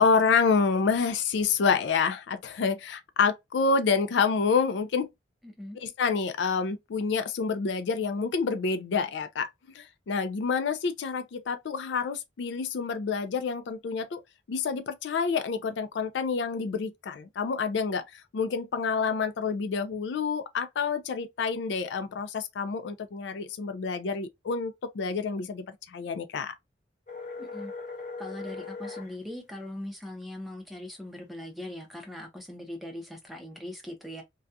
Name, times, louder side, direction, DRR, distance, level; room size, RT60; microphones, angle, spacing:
voice 1, 0.0-5.1 5.8-9.5 9.8-14.2 14.5-26.5, left 5 dB, 75° left, 0.4 m, -28 dB
voice 2, 5.4-5.8 27.4-27.7 28.2-34.2, left 1 dB, ahead, 0.6 m, -40 dB
sound 1, 27.1-29.1, left 4 dB, 40° left, 0.6 m, -39 dB
2.3 x 2.2 x 2.6 m
head